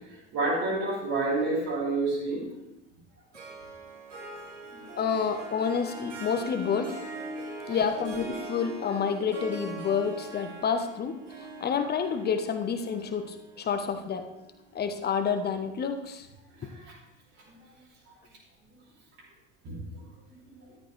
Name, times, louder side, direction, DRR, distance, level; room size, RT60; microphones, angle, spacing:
voice 1, 0.1-2.5 4.7-4.8 7.7-7.8 16.5-17.0 19.6-19.8, right 2 dB, 45° right, -7 dB, 5.1 m, -29 dB
Harp, 3.3-14.8, right 2 dB, 80° right, 1.9 m, -42 dB
voice 2, 5.0-6.9 7.7-11.2 11.6-14.2 14.7-16.3, left 6 dB, 25° left, 7 dB, 1.2 m, -29 dB
13.5 x 10.5 x 3.4 m, 0.94 s
figure-of-eight pair, 70°, 36 cm